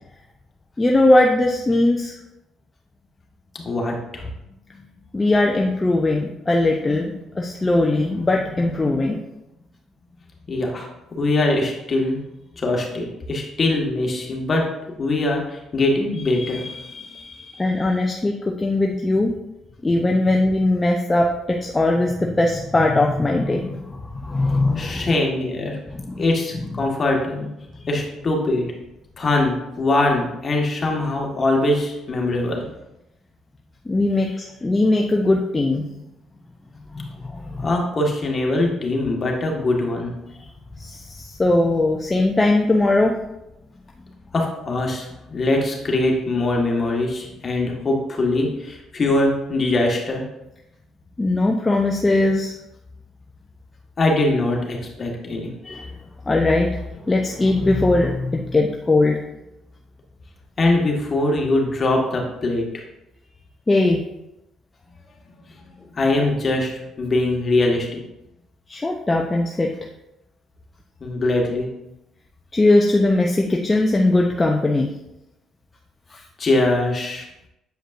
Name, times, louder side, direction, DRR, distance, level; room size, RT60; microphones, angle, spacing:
voice 1, 0.8-2.1 5.1-9.2 17.6-19.3 19.8-25.1 26.0-26.2 33.9-35.8 36.9-37.7 40.8-43.2 51.2-52.5 55.6-55.9 56.3-56.7 57.0-59.2 63.7-64.0 68.7-69.7 72.5-74.9 76.1-76.2, left 2 dB, 25° left, 1 dB, 0.7 m, -20 dB
voice 2, 3.6-4.3 10.5-10.9 11.1-12.2 12.6-14.6 15.0-17.7 24.8-25.8 26.2-27.5 27.9-28.7 29.2-32.6 37.6-40.1 44.3-50.2 54.0-55.5 60.6-62.6 65.9-66.7 67.0-68.0 71.0-71.7 76.4-77.3, left 2 dB, 40° left, 0 dB, 1.6 m, -22 dB
7.9 x 5.0 x 2.6 m, 0.89 s
hypercardioid pair, 55°, 0 cm